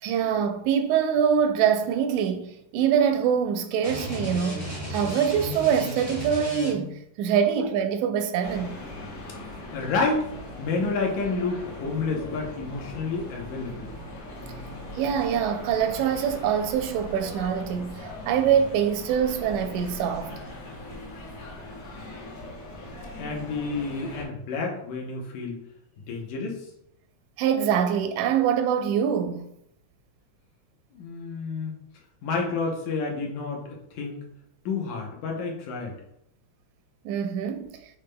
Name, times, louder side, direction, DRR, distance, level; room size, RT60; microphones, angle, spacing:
voice 1, 0.0-8.8 15.0-20.3 27.4-29.5 37.1-37.8, right 8 dB, 85° right, 1.9 m, -24 dB
sound 1, 3.8-7.0, left 1 dB, 25° left, 0.3 m, -34 dB
sound 2, 8.4-24.2, left 1 dB, 60° left, 1.7 m, -40 dB
voice 2, 9.7-10.3 10.6-13.9 23.2-25.6 26.1-26.7 30.9-31.7 32.2-34.2 34.7-36.0, left 4 dB, 80° left, 2.3 m, -29 dB
7.1 x 3.2 x 2.2 m
omnidirectional pair, 3.4 m